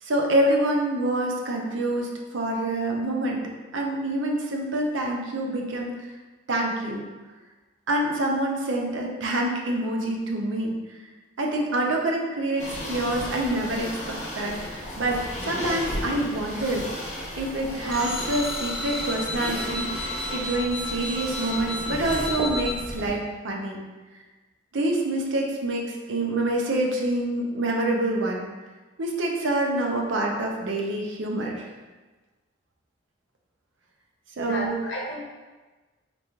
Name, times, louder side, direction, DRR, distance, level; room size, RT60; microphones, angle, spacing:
voice 1, 0.0-3.4 3.7-6.1 6.5-7.0 7.9-10.8 11.4-16.9 17.4-19.9 20.3-23.8 24.7-28.5 29.0-31.7 34.4-34.8, right 1 dB, 90° right, 0 dB, 0.6 m, -26 dB
sound 1, 12.6-23.1, equal, 40° left, 0.8 m, -34 dB
sound 2, 17.9-22.7, left 1 dB, 5° left, 0.4 m, -33 dB
voice 2, 34.4-35.2, left 1 dB, 70° left, -3 dB, 0.8 m, -32 dB
3.7 x 3.0 x 2.4 m, 1.3 s
head